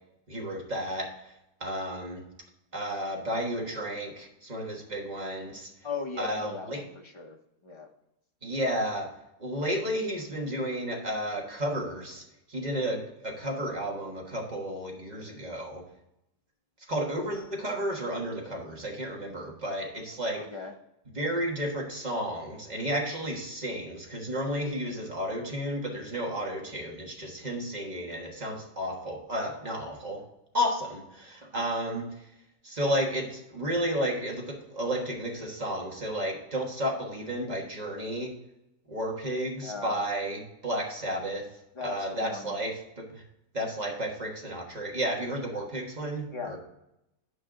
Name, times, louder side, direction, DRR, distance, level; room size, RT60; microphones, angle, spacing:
voice 1, 0.3-1.3 1.6-2.2 2.7-5.7 6.2-6.8 8.4-9.1 9.4-15.8 16.9-20.4 21.1-30.2 30.5-32.3 32.6-38.3 38.9-41.5 41.8-43.2 43.5-46.6, equal, 30° right, 0 dB, 1.4 m, -32 dB
voice 2, 5.8-7.4 7.6-7.9 20.3-20.7 39.6-40.0 41.7-42.6 46.3-46.6, left 4 dB, 35° left, 3 dB, 0.5 m, -38 dB
8.5 x 5.5 x 3.7 m, 0.87 s
omnidirectional pair, 1.6 m